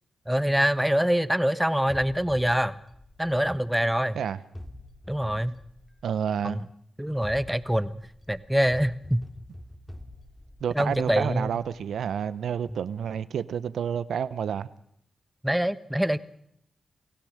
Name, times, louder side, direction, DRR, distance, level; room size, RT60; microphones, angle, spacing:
voice 1, 0.3-2.8 3.2-4.2 5.1-5.6 6.4-6.7 7.0-8.0 8.3-9.2 10.7-11.5 15.4-16.2, equal, 5° right, 1.1 m, -25 dB
sound 1, 1.9-4.0 4.5-6.4 7.0-12.1, left 1 dB, 15° left, 2.6 m, -46 dB
voice 2, 6.0-6.6 10.6-14.7, right 8 dB, 85° right, 0.8 m, -29 dB
28.5 x 16.0 x 6.6 m
cardioid pair, 55°, 0 cm